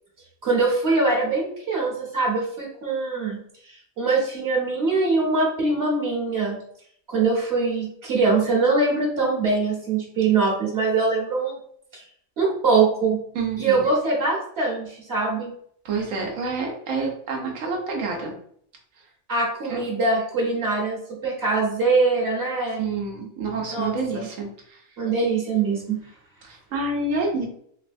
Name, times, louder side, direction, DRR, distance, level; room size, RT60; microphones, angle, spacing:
voice 1, 0.4-3.4 4.0-6.6 7.1-11.6 12.4-13.2 13.6-15.5 19.3-22.9 23.7-24.3 25.0-26.0, right 3 dB, 55° right, -3 dB, 1.2 m, -23 dB
voice 2, 13.3-13.8 15.8-18.3 19.7-19.8 22.8-24.8 26.4-27.5, right 3 dB, 80° right, 0 dB, 1.1 m, -28 dB
3.2 x 3.1 x 2.6 m, 0.63 s
omnidirectional pair, 1.3 m